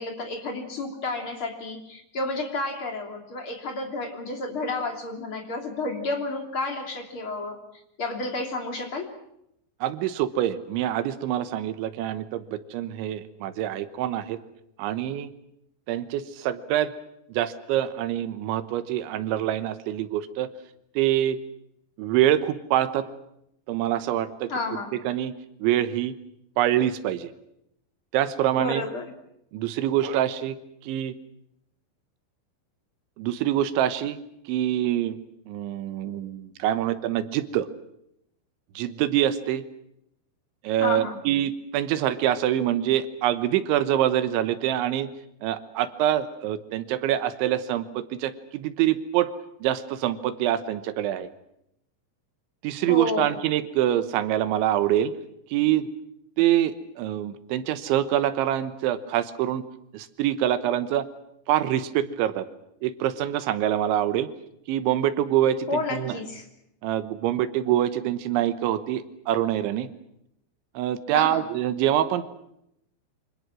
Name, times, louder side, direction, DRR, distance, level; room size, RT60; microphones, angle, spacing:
voice 1, 0.0-7.6 8.0-9.1 24.5-25.0 28.5-29.1 40.8-41.2 52.9-53.3 65.7-66.4 71.1-71.4, left 2 dB, 30° left, 3 dB, 3.3 m, -31 dB
voice 2, 9.8-14.4 14.8-15.3 15.9-17.0 17.3-20.5 21.0-21.4 22.0-23.1 23.7-24.5 24.9-25.3 25.6-26.2 26.6-27.3 28.1-28.9 29.5-30.6 30.8-31.1 33.2-34.2 34.5-35.2 35.5-37.7 38.8-39.7 40.6-45.1 45.4-49.3 49.6-51.3 52.6-55.1 55.5-55.9 56.4-59.6 59.9-61.1 61.5-62.5 62.8-64.3 64.7-66.2 66.8-69.9 70.8-72.3, right 12 dB, 85° right, 12 dB, 3.5 m, -25 dB
28.0 x 25.5 x 6.2 m, 0.78 s
omnidirectional pair, 5.3 m